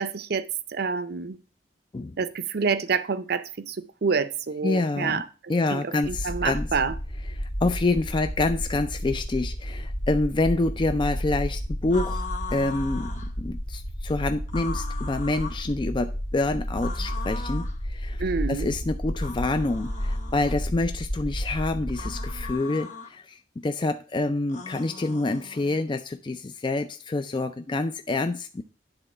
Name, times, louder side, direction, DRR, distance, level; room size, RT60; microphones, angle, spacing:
voice 1, 0.0-1.4 2.2-5.2 5.7-6.9 18.2-18.7, right 5 dB, 60° right, 0.6 m, -27 dB
voice 2, 4.6-5.2 5.5-6.7 7.3-12.2 12.5-18.2 18.5-28.6, left 2 dB, 25° left, 0.4 m, -27 dB
sound 1, 6.0-22.5, equal, 85° left, 2.0 m, -32 dB
sound 2, 11.9-13.3 14.5-15.6 16.8-17.8 19.1-20.6 21.9-23.1 24.5-25.8, left 5 dB, 45° left, 1.1 m, -39 dB
9.8 x 3.9 x 5.5 m
head